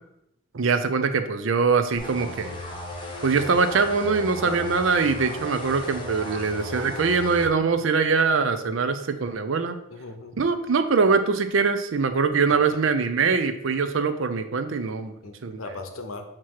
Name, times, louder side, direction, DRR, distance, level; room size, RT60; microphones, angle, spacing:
voice 1, 0.5-2.6 3.2-9.8 10.4-15.1 15.4-15.6, right 5 dB, 65° right, 9 dB, 0.5 m, -23 dB
sound 1, 2.0-7.5, left 2 dB, 25° left, 0.8 m, -36 dB
voice 2, 9.9-10.4 12.5-12.8 15.2-16.2, left 3 dB, 80° left, 6 dB, 0.8 m, -37 dB
7.3 x 3.0 x 4.6 m, 0.82 s
head